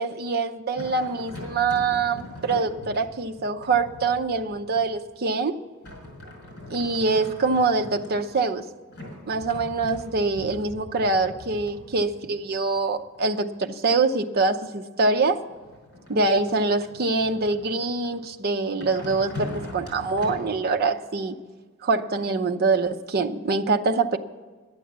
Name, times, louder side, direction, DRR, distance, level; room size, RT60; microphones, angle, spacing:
voice 1, 0.0-5.6 6.7-8.7 9.3-15.4 16.1-21.4 21.8-24.2, right 3 dB, 45° right, 6 dB, 0.7 m, -24 dB
sound 1, 0.8-5.2 5.8-8.5 8.9-13.5 15.2-18.3 18.8-20.5, left 1 dB, 50° left, 5.1 m, -41 dB
11.5 x 9.4 x 7.4 m, 1.4 s
head